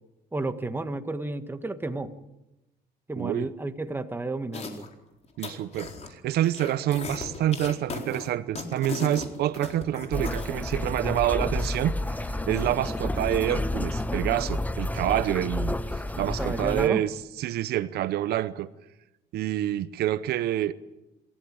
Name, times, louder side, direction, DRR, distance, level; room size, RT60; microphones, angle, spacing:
voice 1, 0.3-2.1 3.1-4.9 16.1-17.0, right 2 dB, 15° right, 1.7 m, -32 dB
voice 2, 3.2-3.5 5.4-18.7 19.3-20.7, right 12 dB, 75° right, 0.8 m, -27 dB
sound 1, 4.5-4.9 5.2-6.1 6.4-10.5, left 4 dB, 40° left, 4.3 m, -36 dB
sound 2, 10.1-16.9, left 1 dB, 10° left, 0.9 m, -30 dB
27.5 x 15.0 x 8.8 m
cardioid pair, 105°, 16 cm